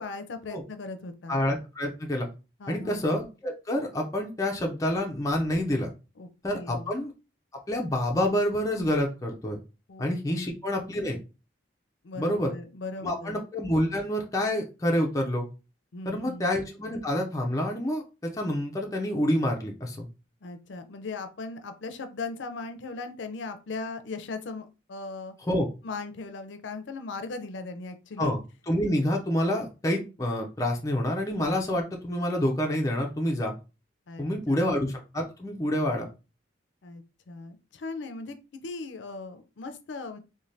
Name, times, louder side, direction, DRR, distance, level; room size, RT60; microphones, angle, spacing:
voice 1, 0.0-1.4 2.6-3.0 6.2-6.9 9.9-10.1 10.3-10.5 12.0-13.4 15.9-16.5 20.4-25.3 25.8-28.3 34.1-34.6 36.8-40.2, left 3 dB, 75° left, 8 dB, 0.5 m, -38 dB
voice 2, 1.3-2.3 2.7-5.9 6.4-7.1 7.7-9.6 10.0-11.2 12.2-12.5 13.0-15.4 16.1-20.1 25.5-25.7 28.2-28.4 28.7-33.5 34.2-36.1, left 1 dB, 15° left, 0 dB, 0.4 m, -27 dB
3.2 x 2.1 x 2.6 m, 0.31 s
head